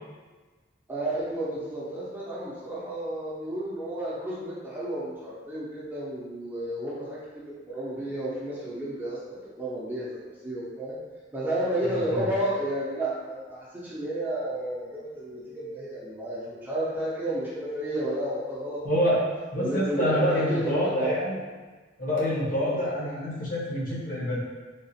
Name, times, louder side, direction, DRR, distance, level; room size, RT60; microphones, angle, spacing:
voice 1, 0.9-11.0 11.3-19.2 19.6-21.1 22.6-22.9, right 1 dB, 10° right, -8 dB, 0.6 m, -32 dB
voice 2, 18.8-19.3 19.5-21.4 22.0-24.4, equal, 50° left, -8 dB, 1.1 m, -26 dB
3.6 x 2.4 x 2.8 m, 1.3 s
head